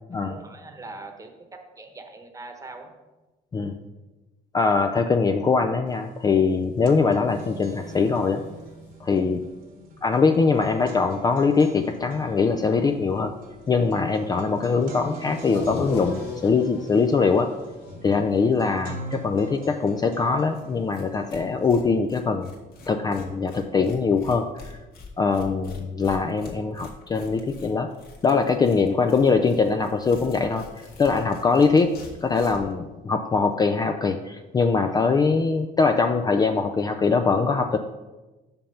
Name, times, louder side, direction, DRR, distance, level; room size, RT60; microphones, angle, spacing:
voice 1, 0.1-2.9, right 3 dB, 20° right, 5 dB, 1.1 m, -42 dB
voice 2, 4.5-8.4 9.0-9.4 10.0-13.3 13.7-17.5 18.0-22.5 22.9-24.8 25.2-27.9 28.2-30.7 31.0-37.8, left 4 dB, 25° left, 6 dB, 0.4 m, -22 dB
sound 1, 5.9-6.0 6.3-21.9, right 3 dB, 60° right, 1.1 m, -44 dB
sound 2, 7.3-22.9 23.2-23.3 23.8-23.9 24.1-24.2, left 3 dB, 85° left, 1.3 m, -41 dB
Tearing, 20.5-20.6 20.9-21.0 21.3-32.7, left 3 dB, 65° left, 1.6 m, -46 dB
5.7 x 5.3 x 5.6 m, 1.1 s
cardioid pair, 110°, 17 cm